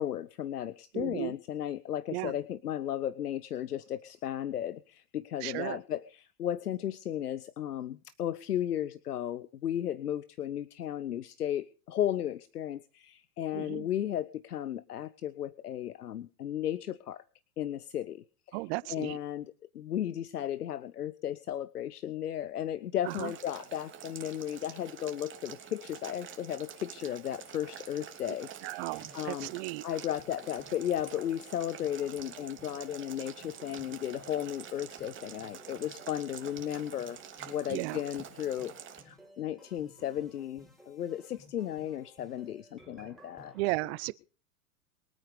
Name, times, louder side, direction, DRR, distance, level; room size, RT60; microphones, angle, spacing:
voice 1, 0.0-17.2 17.6-37.2 37.5-38.7 39.0-43.5, left 11 dB, 85° left, 0.8 m, -35 dB
voice 2, 0.9-1.3 2.1-2.3 5.4-5.8 13.5-13.9 18.5-19.2 23.2-23.3 28.6-29.8 37.7-38.0 43.5-44.1, right 20 dB, 45° right, 0.8 m, -34 dB
Boiling, 23.1-39.0, right 8 dB, 25° right, 2.9 m, -47 dB
sound 1, 29.0-43.6, equal, ahead, 5.2 m, -57 dB
22.5 x 9.1 x 5.1 m
hypercardioid pair, 105°, 45 cm